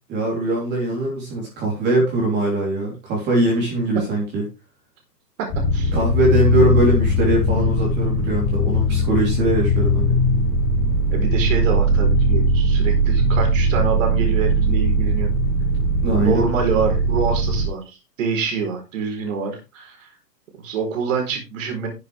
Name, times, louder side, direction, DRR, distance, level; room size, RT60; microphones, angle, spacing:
voice 1, 0.1-4.4 5.9-10.1 16.0-16.4, right 2 dB, 20° right, -2 dB, 3.6 m, -21 dB
sound 1, 5.5-17.7, equal, 20° left, 5.6 m, -19 dB
voice 2, 9.9-10.2 11.1-15.3 16.2-20.1 20.6-21.9, right 5 dB, 50° right, 3 dB, 4.3 m, -26 dB
12.0 x 7.5 x 3.5 m, 0.27 s
hypercardioid pair, 140°, 50 cm